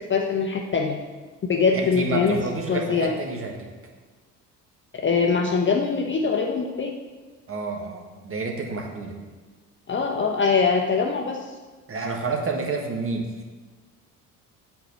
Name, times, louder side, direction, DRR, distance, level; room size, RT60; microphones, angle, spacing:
voice 1, 0.1-1.0 1.5-2.4 2.7-3.1 5.0-6.9 9.9-11.4, left 5 dB, 25° left, 2 dB, 0.8 m, -22 dB
voice 2, 1.7-3.7 7.5-9.2 11.9-13.3, right 3 dB, 25° right, 2 dB, 1.6 m, -29 dB
8.2 x 4.7 x 6.8 m, 1.3 s
figure-of-eight pair, 60°, 48 cm